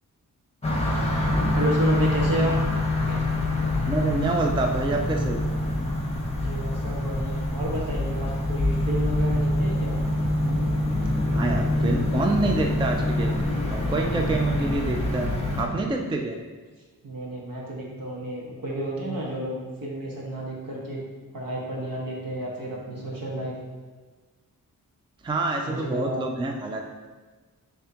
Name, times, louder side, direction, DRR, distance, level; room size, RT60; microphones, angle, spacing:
sound 1, 0.6-15.6, left 1 dB, 20° left, 1.0 m, -25 dB
voice 1, 1.5-2.5 3.0-3.2 6.3-10.0 17.0-21.0 21.3-23.6 25.6-26.2, right 1 dB, 70° right, -4 dB, 1.6 m, -31 dB
voice 2, 3.9-5.4 11.3-16.4 25.2-26.8, right 2 dB, 15° right, 3 dB, 0.4 m, -27 dB
10.0 x 3.4 x 2.9 m, 1.3 s
wide cardioid pair, 155°, 35 cm